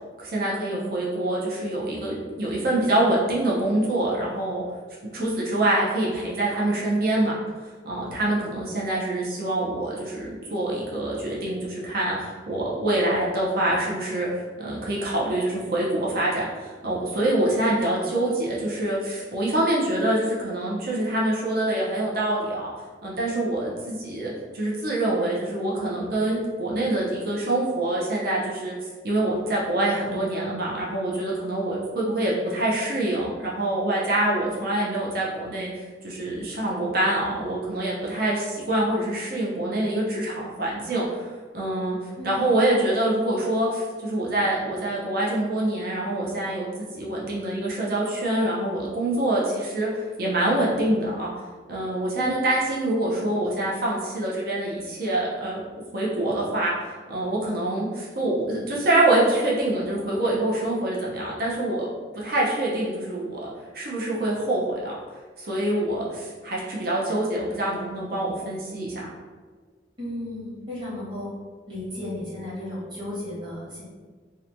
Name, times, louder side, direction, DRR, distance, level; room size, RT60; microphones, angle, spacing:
voice 1, 0.2-4.6 5.1-7.3 7.8-22.7 23.0-28.7 29.0-41.3 41.5-42.0 42.2-51.3 51.7-55.6 55.9-61.9 62.1-64.9 65.4-69.0, right 1 dB, 55° right, -5 dB, 0.6 m, -25 dB
voice 2, 70.0-71.3 71.7-73.8, left 1 dB, 25° right, -9 dB, 1.1 m, -34 dB
2.9 x 2.1 x 2.5 m, 1.5 s
head